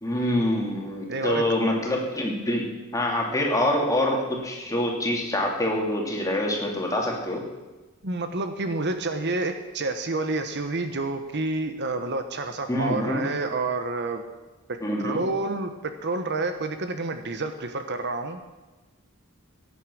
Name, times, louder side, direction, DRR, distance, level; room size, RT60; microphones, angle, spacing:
voice 1, 0.0-7.4 12.7-13.3 14.8-15.2, left 1 dB, 15° left, -1 dB, 2.8 m, -26 dB
voice 2, 1.1-1.5 8.0-14.2 14.7-18.4, right 2 dB, 55° right, 7 dB, 1.1 m, -29 dB
16.5 x 9.4 x 6.3 m, 1.2 s
head